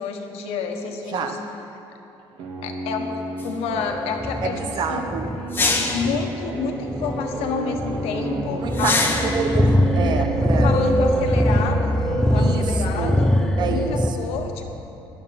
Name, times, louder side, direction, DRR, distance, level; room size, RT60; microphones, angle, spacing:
voice 1, 0.0-1.4 2.6-4.6 4.9-5.2 5.9-9.0 10.0-10.3 10.6-13.3 13.7-14.6, left 5 dB, 85° left, 4 dB, 1.3 m, -29 dB
sound 1, 2.2-12.6, right 1 dB, 65° right, 1.9 m, -32 dB
sound 2, 3.4-3.5 5.5-6.2 8.7-9.5, left 3 dB, 20° left, 1.0 m, -23 dB
sound 3, 3.7-14.1, equal, 5° left, 0.5 m, -22 dB
voice 2, 4.4-5.3 8.5-9.0 9.2-10.7 12.3-13.2 13.6-14.3, right 5 dB, 50° right, 6 dB, 1.0 m, -28 dB
16.5 x 11.0 x 4.2 m, 2.9 s
cardioid pair, 165°, 10 cm